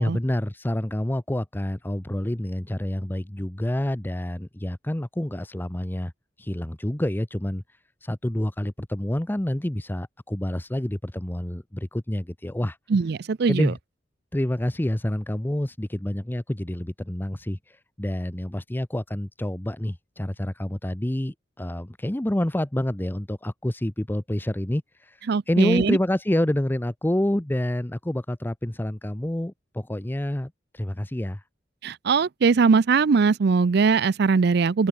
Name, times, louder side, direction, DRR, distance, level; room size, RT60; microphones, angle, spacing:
voice 1, 0.0-6.1 6.4-7.6 8.0-12.8 13.5-13.8 14.3-31.4, left 1 dB, 10° left, 0.7 m, -28 dB
voice 2, 12.9-13.7 25.3-26.0 31.8-34.9, right 5 dB, 60° right, 0.4 m, -21 dB
head